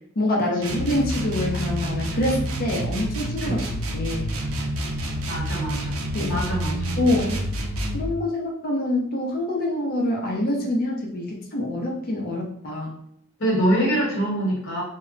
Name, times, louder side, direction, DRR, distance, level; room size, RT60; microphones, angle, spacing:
voice 1, 0.2-3.6 3.9-4.3 6.1-6.4 7.0-7.5 7.9-12.9, left 1 dB, 45° left, 0 dB, 0.6 m, -25 dB
sound 1, 0.6-8.1, right 1 dB, 75° right, 0.5 m, -28 dB
voice 2, 5.3-6.0 6.3-7.0 13.4-14.8, right 1 dB, 60° left, -4 dB, 1.1 m, -24 dB
2.1 x 2.1 x 3.7 m, 0.70 s
head